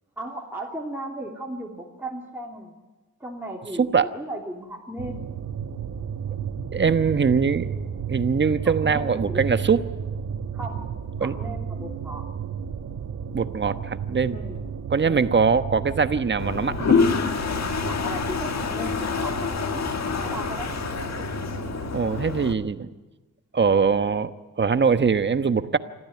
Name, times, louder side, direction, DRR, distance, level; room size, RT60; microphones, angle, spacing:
voice 1, 0.2-2.8 3.2-5.2 8.6-9.7 10.5-10.8 11.2-12.3 14.3-14.6 15.0-15.3 17.8-19.9 20.2-20.9, right 1 dB, 5° right, -2 dB, 3.1 m, -36 dB
voice 2, 3.8-4.1 6.7-7.7 8.1-9.8 11.2-11.4 13.3-14.4 14.9-17.0 21.2-21.3 21.9-22.9 23.5-24.3 24.6-25.8, right 5 dB, 35° right, 11 dB, 1.2 m, -22 dB
sound 1, 5.0-22.1, right 7 dB, 65° right, 1.4 m, -33 dB
Toilet flush, 16.4-22.5, left 5 dB, 55° left, 1.8 m, -26 dB
26.0 x 14.5 x 9.6 m, 1.2 s
cardioid pair, 95°, 32 cm